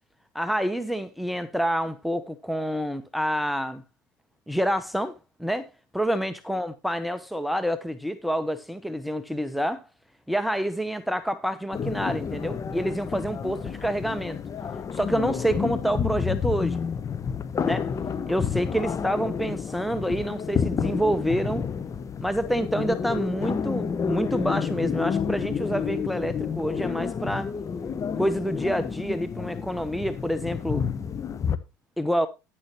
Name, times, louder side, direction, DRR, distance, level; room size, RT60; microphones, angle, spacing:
voice 1, 0.3-3.8 4.5-5.7 5.9-9.8 10.3-14.4 14.9-16.8 17.6-17.9 18.3-21.6 22.2-27.5 28.2-30.9 32.0-32.3, equal, ahead, 0.9 m, -27 dB
sound 1, 11.7-31.6, left 6 dB, 30° left, 1.0 m, -30 dB
10.5 x 10.5 x 3.0 m
hypercardioid pair, 80°, 10 cm